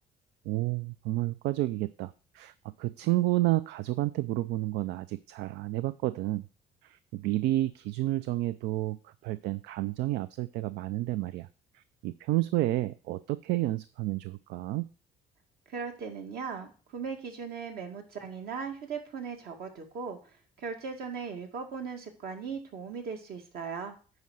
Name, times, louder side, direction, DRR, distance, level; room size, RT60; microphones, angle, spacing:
voice 1, 0.5-6.4 6.8-11.5 11.7-14.9, right 16 dB, 80° right, 15 dB, 0.4 m, -30 dB
voice 2, 15.7-20.2 20.6-23.9, right 5 dB, 65° right, 4 dB, 2.1 m, -38 dB
9.4 x 4.7 x 6.3 m, 0.38 s
cardioid pair, 110°, 17 cm